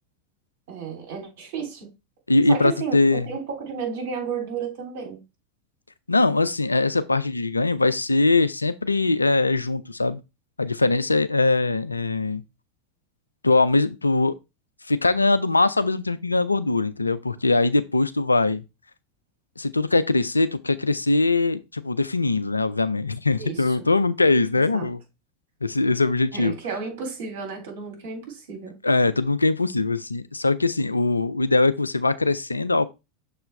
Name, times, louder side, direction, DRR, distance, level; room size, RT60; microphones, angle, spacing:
voice 1, 0.7-1.9 2.5-5.2 23.4-23.8 24.5-24.9 26.3-28.7, right 6 dB, 60° right, 2.9 m, -32 dB
voice 2, 2.3-3.3 6.1-10.2 10.6-12.4 13.4-14.3 14.9-18.6 19.6-25.0 25.6-26.6 28.8-32.9, left 3 dB, 85° left, 0.4 m, -21 dB
6.6 x 4.5 x 3.3 m
figure-of-eight pair, 85°, 0 cm